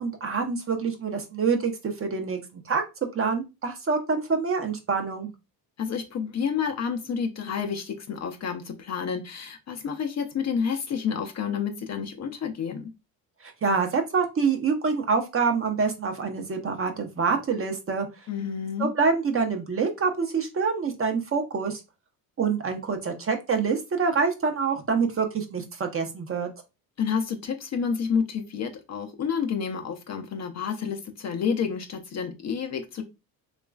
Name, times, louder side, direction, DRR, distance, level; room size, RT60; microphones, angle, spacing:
voice 1, 0.0-2.4 2.7-2.8 3.1-5.3 13.4-18.1 18.8-21.8 22.4-26.5, right 5 dB, 30° right, 0.6 m, -26 dB
voice 2, 5.8-12.9 18.3-18.9 27.0-33.0, left 6 dB, 35° left, 0.5 m, -29 dB
2.9 x 2.4 x 2.2 m
hypercardioid pair, 60°, 47 cm